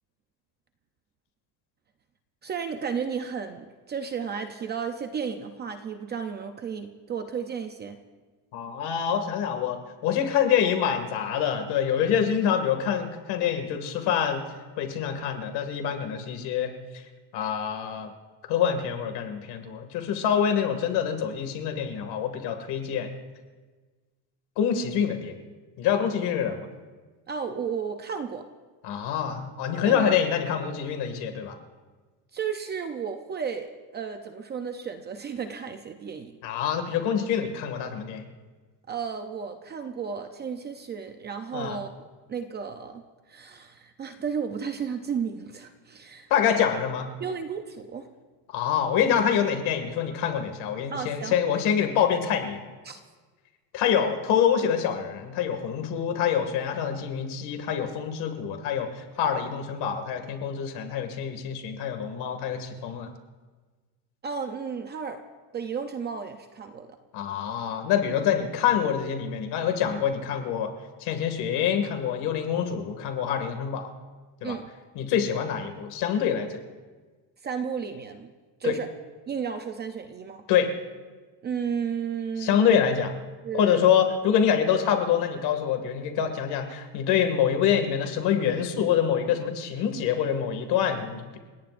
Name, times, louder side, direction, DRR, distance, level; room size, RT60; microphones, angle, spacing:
voice 1, 2.4-8.0 27.3-28.5 29.8-30.2 32.3-36.4 38.9-43.0 43.3-46.3 47.2-48.1 50.9-51.4 52.8-53.0 64.2-65.2 65.5-67.0 74.4-74.7 77.4-78.3 78.6-78.9 79.3-80.4 81.4-82.8 83.4-83.8, right 6 dB, 25° right, 6 dB, 0.5 m, -33 dB
voice 2, 8.5-14.4 14.8-17.0 17.3-18.1 18.4-23.1 24.6-25.4 25.8-26.7 28.8-31.6 36.4-38.3 41.5-41.8 46.3-47.1 48.5-52.6 53.7-63.1 67.1-70.7 71.0-73.9 74.4-74.6 75.0-76.6 78.6-78.8 80.5-80.7 82.4-83.1 83.5-91.4, left 8 dB, 60° left, 6 dB, 2.2 m, -26 dB
30.0 x 17.5 x 2.6 m, 1.4 s
cardioid pair, 175°, 45 cm